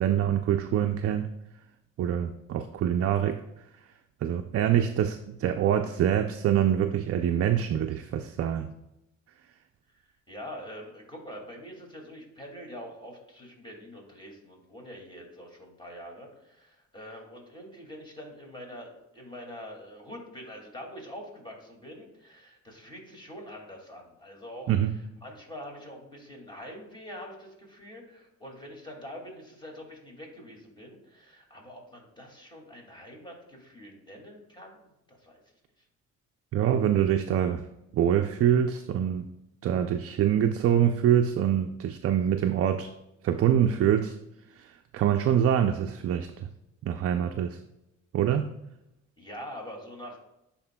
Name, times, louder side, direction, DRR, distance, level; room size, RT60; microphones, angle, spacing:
voice 1, 0.0-1.3 2.0-3.4 4.2-8.7 24.7-24.9 36.5-37.6 37.9-39.3 39.6-42.9 43.2-44.1 44.6-46.5 46.8-47.6 48.1-48.5, right 9 dB, 50° right, 6 dB, 0.4 m, -25 dB
voice 2, 9.9-35.4 49.2-50.2, equal, 15° left, 0 dB, 2.2 m, -45 dB
10.5 x 4.3 x 2.2 m, 0.88 s
cardioid pair, 90°, 30 cm